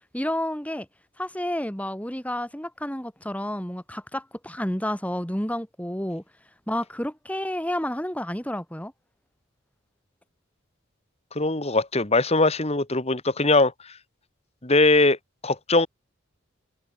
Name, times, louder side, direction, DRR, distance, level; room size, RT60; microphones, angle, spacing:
voice 1, 0.1-0.9 1.2-6.2 6.7-8.9, left 1 dB, 5° left, 3.5 m, -30 dB
voice 2, 11.3-13.9 14.6-15.2 15.4-15.9, left 2 dB, 30° left, 2.0 m, -21 dB
head